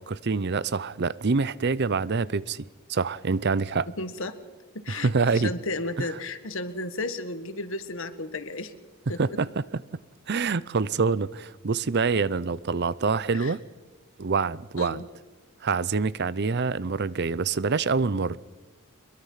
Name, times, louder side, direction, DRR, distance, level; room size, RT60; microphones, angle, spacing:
voice 1, 0.1-3.9 4.9-5.5 9.2-9.5 10.3-13.6 14.2-15.0 15.6-18.4, right 4 dB, 50° right, 0.6 m, -26 dB
voice 2, 4.0-4.4 4.7-8.7 9.1-9.4 13.3-13.5 14.8-15.1, left 2 dB, 60° left, 1.7 m, -33 dB
23.5 x 22.5 x 5.7 m
head